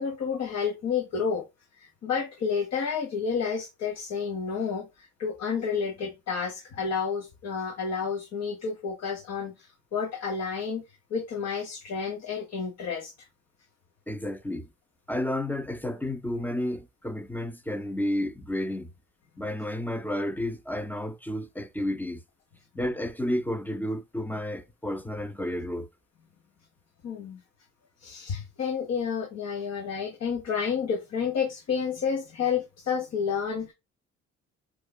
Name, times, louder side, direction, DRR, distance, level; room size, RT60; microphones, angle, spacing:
voice 1, 0.0-1.4 1.7-10.8 11.1-13.1 27.0-27.4 28.0-33.7, left 6 dB, 60° left, 0.9 m, -30 dB
voice 2, 14.1-14.7 15.1-18.9 19.4-22.2 22.7-25.9, left 1 dB, 5° left, 0.5 m, -31 dB
4.7 x 2.4 x 2.2 m
cardioid pair, 80°, 29 cm